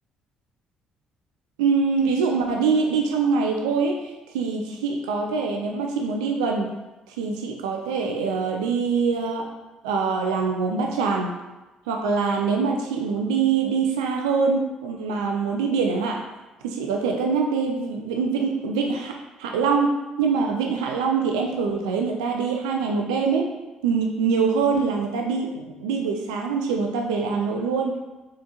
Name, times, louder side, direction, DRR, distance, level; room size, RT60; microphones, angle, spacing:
voice 1, 1.6-6.7 7.1-9.5 9.8-11.3 11.9-16.2 16.6-23.6 23.8-28.0, right 5 dB, 70° right, 2 dB, 0.4 m, -24 dB
4.2 x 3.7 x 2.8 m, 1.1 s
figure-of-eight pair, 45°, 4 cm